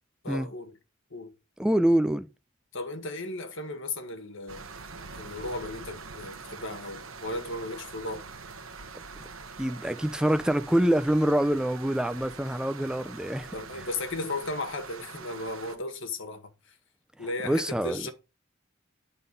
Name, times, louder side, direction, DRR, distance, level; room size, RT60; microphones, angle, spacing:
voice 1, 0.2-0.7 1.1-1.3 2.7-4.7 5.1-8.3 13.5-16.8 17.2-18.1, left 2 dB, 65° left, 1.7 m, -35 dB
voice 2, 1.6-2.3 9.6-13.5 17.4-18.0, right 1 dB, 5° right, 0.5 m, -25 dB
sound 1, 4.5-15.8, right 4 dB, 75° right, 1.1 m, -44 dB
11.5 x 3.9 x 5.3 m
head